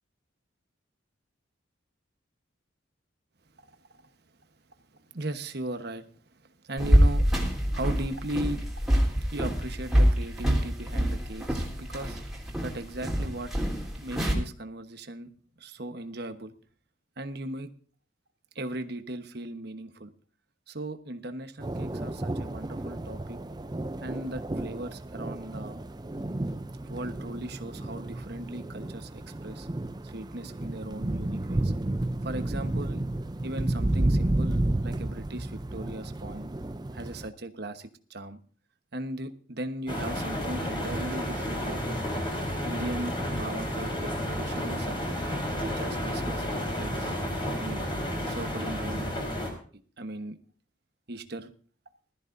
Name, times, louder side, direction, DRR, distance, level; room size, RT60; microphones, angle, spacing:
voice 1, 5.1-6.0 6.6-8.8 9.3-12.2 12.6-13.5 14.0-15.3 15.6-16.5 17.2-17.7 18.5-20.1 20.7-23.4 24.0-25.8 26.9-29.7 30.0-31.7 32.2-33.0 33.4-36.5 36.9-38.4 38.9-42.0 42.6-45.0 45.6-47.1 47.6-47.9 48.2-49.1 50.0-50.4 51.1-51.5, right 1 dB, 50° right, 9 dB, 1.1 m, -38 dB
sound 1, 6.8-14.3, equal, ahead, 3.2 m, -25 dB
sound 2, 21.6-37.3, right 1 dB, 20° right, 0.5 m, -32 dB
sound 3, 39.9-49.5, equal, 25° left, 4.1 m, -31 dB
20.5 x 13.5 x 2.6 m, 0.43 s
head